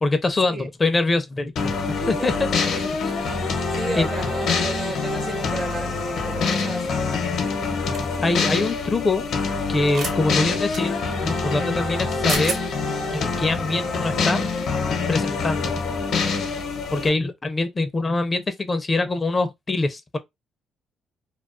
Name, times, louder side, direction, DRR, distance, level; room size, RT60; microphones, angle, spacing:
voice 1, 0.0-2.5 4.0-4.1 8.2-9.2 9.7-12.6 13.1-14.4 15.1-15.7 16.9-20.2, left 2 dB, 30° left, 0.4 m, -24 dB
sound 1, 1.6-17.1, left 4 dB, 70° left, 0.7 m, -25 dB
voice 2, 2.0-2.4 2.8-3.0 3.7-7.1, right 3 dB, 35° right, 0.5 m, -33 dB
sound 2, 7.9-8.2 9.8-10.1 10.7-10.8 12.0-12.1 12.3-12.6, right 4 dB, 70° right, 0.8 m, -30 dB
2.3 x 2.3 x 2.4 m
cardioid pair, 90°, 0 cm